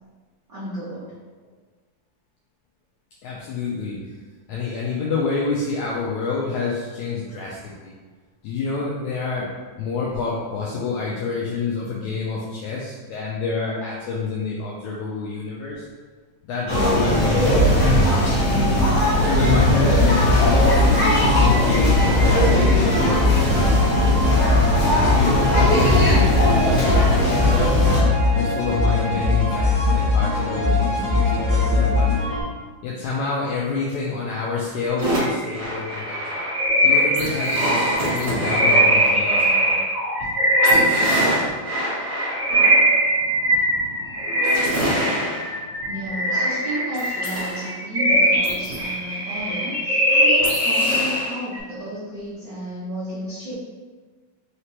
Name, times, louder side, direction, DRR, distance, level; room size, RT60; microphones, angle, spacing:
voice 1, 0.5-1.1 45.9-53.5, right 1 dB, 85° right, -11 dB, 0.9 m, -32 dB
voice 2, 3.2-4.0 4.5-7.9 8.4-9.5 9.8-15.8 16.4-18.7 19.2-24.3 24.9-27.9 28.3-32.1 32.8-36.4 36.8-39.8, left 4 dB, 85° left, -4 dB, 1.6 m, -28 dB
sound 1, 16.7-28.0, equal, 45° left, 1.0 m, -19 dB
sound 2, 19.4-32.4, left 3 dB, 65° left, 2.2 m, -20 dB
sound 3, 35.0-51.6, equal, 45° right, 0.8 m, -21 dB
5.0 x 3.2 x 2.8 m, 1.4 s
omnidirectional pair, 3.9 m